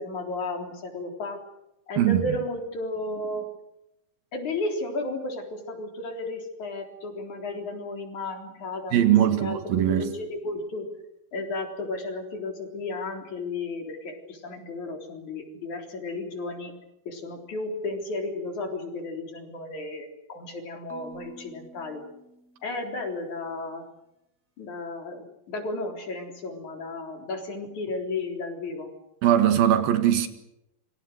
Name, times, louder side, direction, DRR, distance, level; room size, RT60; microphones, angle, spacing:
voice 1, 0.0-1.4 1.9-3.4 4.3-9.0 9.3-10.9 11.3-16.7 17.1-22.0 22.6-23.8 24.6-28.9, left 2 dB, 55° left, 5.1 m, -33 dB
voice 2, 2.0-2.4 8.9-10.1 29.2-30.3, right 11 dB, 75° right, 3.5 m, -21 dB
Marimba xylophone / Wood, 20.9-23.1, right 1 dB, 5° right, 4.4 m, -48 dB
27.5 x 25.0 x 6.6 m
omnidirectional pair, 4.2 m